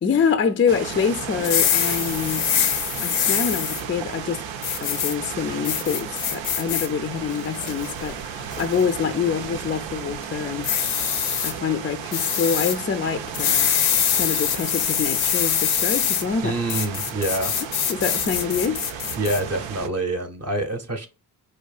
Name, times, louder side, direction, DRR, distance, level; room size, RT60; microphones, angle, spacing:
voice 1, 0.0-2.6 3.0-4.4 4.8-10.7 11.4-13.7 14.1-16.6 17.9-18.8, left 6 dB, 25° left, 0.4 m, -25 dB
sound 1, 0.7-19.9, right 8 dB, 70° right, 0.6 m, -34 dB
sound 2, 1.4-3.8 4.6-5.1 5.6-6.9 7.3-7.9 8.5-8.8 10.6-11.5 12.1-12.8 13.3-16.2 16.7-19.4, left 9 dB, 75° left, 0.7 m, -24 dB
voice 2, 16.4-17.6 19.2-21.1, right 2 dB, 30° right, 0.8 m, -26 dB
4.5 x 2.6 x 2.3 m
hypercardioid pair, 40°, 48 cm